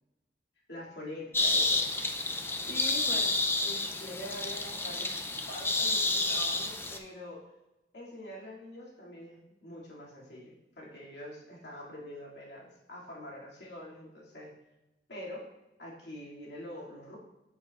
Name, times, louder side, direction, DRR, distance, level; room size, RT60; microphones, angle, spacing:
voice 1, 0.7-1.9 2.7-3.3 3.6-5.1 5.5-7.4 7.9-14.5 15.1-15.4 15.8-17.2, left 1 dB, 70° left, -4 dB, 2.3 m, -44 dB
sound 1, 1.3-7.0, left 2 dB, 15° left, 0.4 m, -30 dB
8.4 x 7.3 x 2.4 m, 0.97 s
head